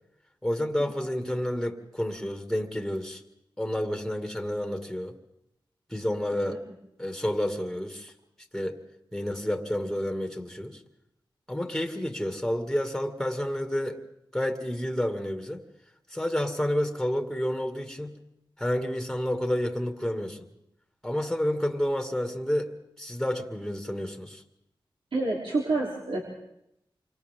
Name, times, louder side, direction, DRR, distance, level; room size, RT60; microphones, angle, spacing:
voice 1, 0.4-3.2 3.6-5.2 5.9-6.6 7.0-8.1 8.5-8.8 9.1-10.8 11.5-14.0 14.3-15.6 16.1-18.2 18.6-20.4 21.0-24.4, left 1 dB, 5° left, 4 dB, 2.3 m, -30 dB
voice 2, 25.1-26.2, right 3 dB, 80° right, -3 dB, 3.5 m, -27 dB
28.5 x 25.5 x 3.8 m, 0.80 s
cardioid pair, 55°, 9 cm